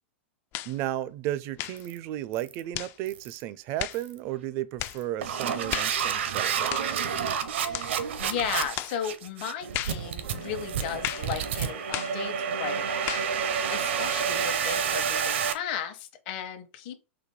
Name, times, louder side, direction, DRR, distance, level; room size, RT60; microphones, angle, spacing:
sound 1, 0.5-0.8 1.5-1.9 2.7-3.0 3.8-4.0 4.8-5.0 5.7-6.0 6.7-6.9 7.7-7.9 8.8-9.0 9.7-10.0 11.0-11.3 11.9-12.2 13.1-13.3, left 14 dB, 35° left, 0.3 m, -34 dB
voice 1, 0.7-6.8, right 13 dB, 40° right, 0.4 m, -34 dB
sound 2, 1.8-2.0 2.3-2.6 3.1-3.4 3.9-4.2 4.8-15.5, right 7 dB, 75° right, 0.8 m, -29 dB
voice 2, 7.7-16.9, left 9 dB, 55° left, 1.0 m, -36 dB
4.1 x 2.7 x 4.7 m
hypercardioid pair, 120°, 6 cm